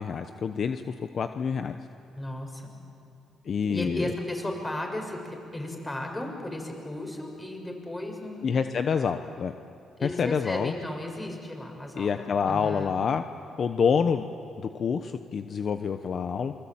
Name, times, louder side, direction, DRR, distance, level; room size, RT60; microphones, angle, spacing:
voice 1, 0.0-1.8 3.4-4.1 8.4-9.5 10.0-10.7 12.0-13.2 13.6-14.3 14.6-16.5, left 6 dB, 50° left, 8 dB, 1.1 m, -27 dB
voice 2, 2.1-2.7 3.6-8.5 10.0-12.9, left 1 dB, 15° left, 2 dB, 6.6 m, -35 dB
27.5 x 24.0 x 8.9 m, 2.8 s
cardioid pair, 90°, 0 cm